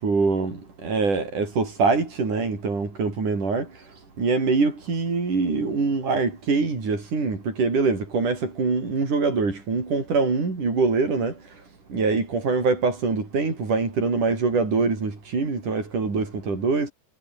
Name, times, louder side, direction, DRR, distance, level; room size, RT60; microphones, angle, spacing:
voice 1, 0.0-3.7 4.2-11.3 11.9-16.9, right 4 dB, 80° right, 8.1 m, -24 dB
omnidirectional pair, 3.5 m